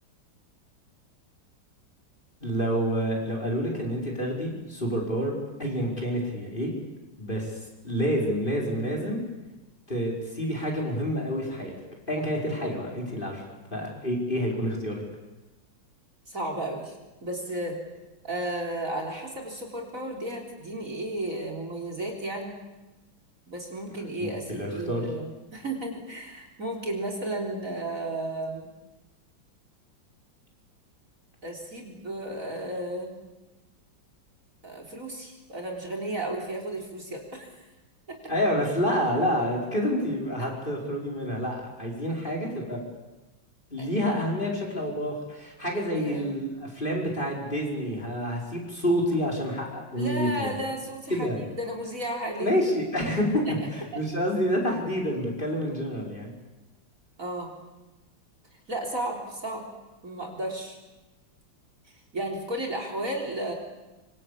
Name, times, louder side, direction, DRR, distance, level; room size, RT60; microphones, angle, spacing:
voice 1, 2.4-5.3 5.6-6.7 7.2-7.6 7.8-9.2 9.9-11.7 12.1-15.0 23.8-23.9 24.2-25.1 38.3-42.8 43.7-50.6 51.1-51.4 52.4-53.4 53.7-56.3, equal, 25° left, -1 dB, 5.6 m, -28 dB
voice 2, 16.3-17.0 17.2-17.8 18.2-22.5 23.5-28.7 31.4-33.1 34.6-37.5 38.1-38.2 43.8-43.9 45.9-46.3 49.9-52.5 53.5-54.0 57.2-57.5 58.7-59.7 60.0-60.8 62.1-63.5, right 1 dB, 40° right, 1 dB, 4.3 m, -33 dB
25.5 x 25.5 x 8.7 m, 1.1 s
omnidirectional pair, 2.1 m